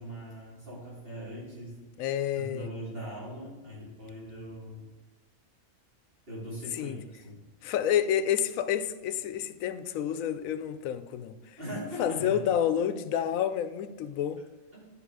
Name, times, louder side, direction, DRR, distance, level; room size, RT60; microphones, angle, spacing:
voice 1, 0.0-1.8 2.3-4.9 6.3-7.4 11.6-12.4 14.7-14.8, equal, 45° right, 3.3 m, -40 dB
voice 2, 2.0-2.7 6.7-7.0 7.6-11.6 12.0-14.4, left 9 dB, 85° left, 1.0 m, -29 dB
10.5 x 5.2 x 4.8 m
omnidirectional pair, 1.4 m